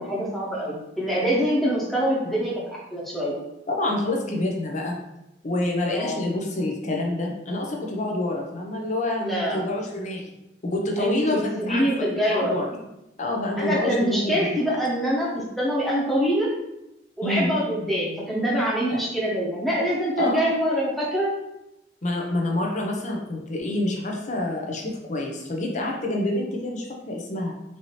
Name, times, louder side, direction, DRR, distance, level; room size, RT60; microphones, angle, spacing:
voice 1, 0.0-2.5 2.9-3.3 5.9-6.2 9.2-9.6 11.0-12.5 13.6-16.5 17.2-21.3, equal, ahead, -6 dB, 1.0 m, -25 dB
voice 2, 3.7-5.0 5.4-10.3 10.6-11.9 12.3-12.7 13.2-14.5 17.2-17.5 18.9-19.0 20.2-20.4 22.0-27.5, left 1 dB, 45° left, 0 dB, 0.7 m, -27 dB
4.5 x 2.8 x 3.0 m, 0.89 s
head